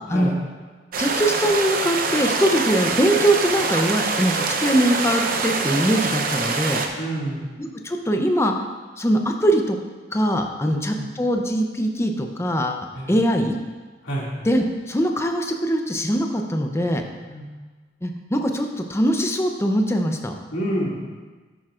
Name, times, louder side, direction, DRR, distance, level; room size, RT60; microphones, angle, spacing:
sound 1, 0.9-6.9, right 4 dB, 50° right, 0.7 m, -24 dB
voice 1, 1.0-6.8 7.6-8.5 9.0-9.8 10.1-13.6 14.4-17.0 18.0-20.3, equal, 15° left, 4 dB, 0.6 m, -22 dB
voice 2, 7.0-7.5 10.6-11.1 12.9-13.1 14.0-14.3 17.2-17.4 20.5-21.0, right 1 dB, 85° left, -5 dB, 2.4 m, -28 dB
11.0 x 8.8 x 2.5 m, 1.4 s
head